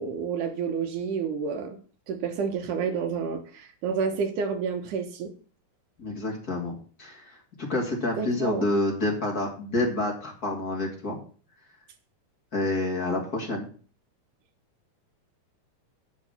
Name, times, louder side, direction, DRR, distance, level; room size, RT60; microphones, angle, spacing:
voice 1, 0.0-1.8 2.1-5.3 8.2-8.7, right 6 dB, 65° right, 6 dB, 2.4 m, -29 dB
voice 2, 6.0-11.2 12.5-13.7, left 2 dB, 30° left, 0 dB, 2.2 m, -28 dB
9.5 x 6.2 x 7.1 m, 0.40 s
omnidirectional pair, 4.5 m